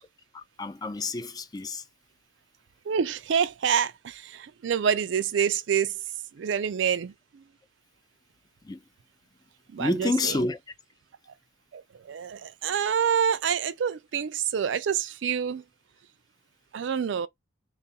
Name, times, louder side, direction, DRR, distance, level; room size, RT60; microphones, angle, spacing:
voice 1, 0.3-1.8 8.6-8.8 9.8-10.6, left 2 dB, 20° left, 0.3 m, -29 dB
voice 2, 2.9-6.0 6.3-7.4 9.7-10.5 11.7-15.6 16.7-17.3, right 7 dB, 65° right, 0.4 m, -27 dB
3.5 x 2.3 x 4.0 m
head